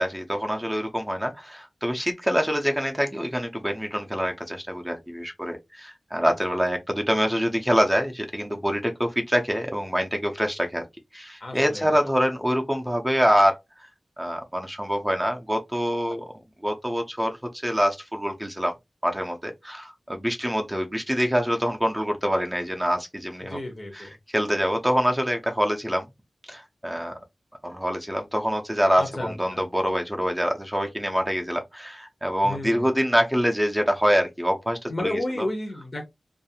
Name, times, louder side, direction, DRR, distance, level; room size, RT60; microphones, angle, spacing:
voice 1, 0.0-10.8 11.1-13.6 14.2-16.2 16.6-17.4 17.6-18.7 19.0-23.6 23.9-26.1 26.5-27.1 27.6-35.2, equal, 5° right, 0.5 m, -25 dB
voice 2, 6.2-6.6 11.4-11.9 23.5-24.1 29.0-29.6 32.4-32.9 34.9-36.1, left 1 dB, 40° left, 0.7 m, -32 dB
2.4 x 2.3 x 2.7 m
wide cardioid pair, 85°, 0 cm